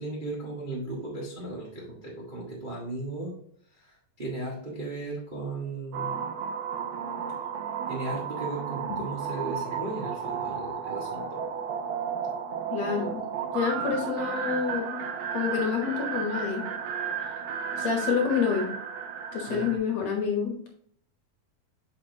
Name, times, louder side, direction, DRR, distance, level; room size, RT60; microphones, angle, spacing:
voice 1, 0.0-3.3 3.8-6.1 7.9-11.4 19.5-19.7, right 2 dB, 70° right, -4 dB, 0.4 m, -36 dB
sound 1, 5.9-19.8, right 7 dB, 90° right, 2.7 m, -33 dB
voice 2, 12.7-13.2 13.5-15.0 15.3-16.7 17.8-18.7 19.3-20.7, left 6 dB, 65° left, 0 dB, 1.9 m, -28 dB
7.3 x 5.6 x 2.8 m, 0.65 s
omnidirectional pair, 4.1 m